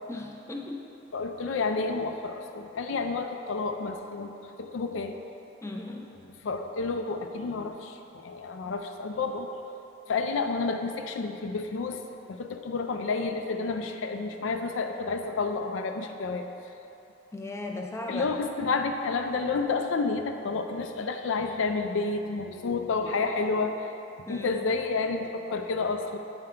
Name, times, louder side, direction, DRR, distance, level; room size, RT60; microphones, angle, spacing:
voice 1, 0.1-0.9 5.6-6.1 17.3-18.4 24.3-24.6, left 2 dB, 15° left, 1 dB, 0.3 m, -37 dB
voice 2, 1.1-5.1 6.4-9.5 10.1-12.0 12.3-16.5 18.1-23.7 24.3-26.2, left 4 dB, 80° left, 6 dB, 0.4 m, -30 dB
7.7 x 4.4 x 3.7 m, 2.9 s
head